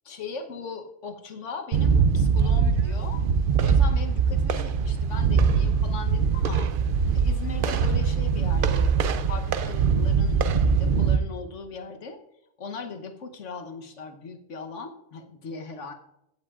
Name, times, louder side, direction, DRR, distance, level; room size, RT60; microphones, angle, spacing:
voice 1, 0.0-3.2 3.6-6.7 7.1-12.2 12.6-15.9, left 4 dB, 70° left, 6 dB, 1.3 m, -39 dB
sound 1, 1.7-11.2, right 6 dB, 55° right, 0.6 m, -22 dB
15.5 x 7.9 x 2.4 m, 0.84 s
omnidirectional pair, 1.3 m